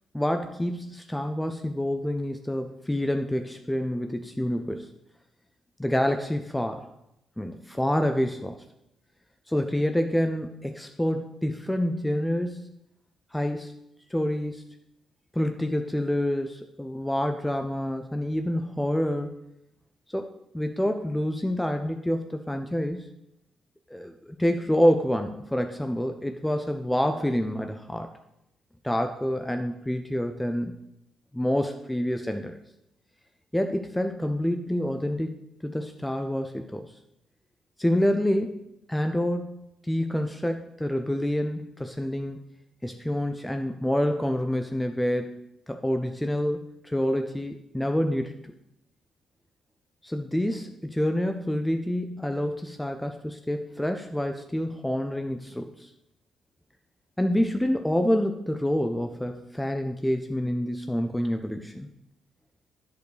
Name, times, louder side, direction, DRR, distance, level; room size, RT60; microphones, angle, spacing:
voice 1, 0.1-4.9 5.8-6.9 7.4-8.6 9.5-12.8 13.3-13.7 14.1-14.6 15.3-19.4 20.1-23.1 23.9-28.1 28.8-30.7 31.3-32.6 33.5-35.3 35.6-36.9 37.8-38.6 38.9-39.5 39.8-42.4 42.8-48.3 50.0-55.9 57.2-61.9, equal, 5° left, 5 dB, 0.5 m, -27 dB
10.5 x 4.6 x 5.0 m, 0.83 s
cardioid pair, 110°, 0 cm